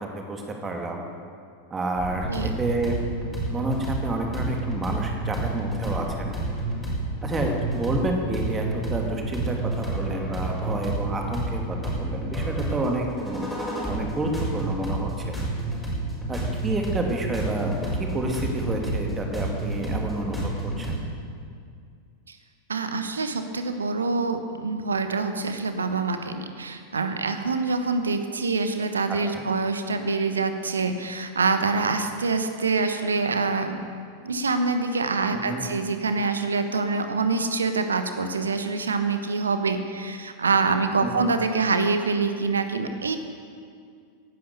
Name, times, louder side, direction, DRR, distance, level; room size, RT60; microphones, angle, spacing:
voice 1, 0.1-1.0 1.7-2.9 3.5-6.3 7.2-8.6 8.9-15.4 16.3-17.7 18.0-21.0 29.1-29.4 35.3-35.7 41.0-41.3, right 2 dB, 20° right, 1 dB, 2.5 m, -30 dB
sound 1, 2.0-21.0, right 2 dB, 5° left, 5.3 m, -30 dB
voice 2, 22.7-33.8 34.2-43.2, right 4 dB, 75° right, 8 dB, 1.1 m, -25 dB
17.0 x 11.5 x 6.7 m, 2.2 s
figure-of-eight pair, 90°, 0 cm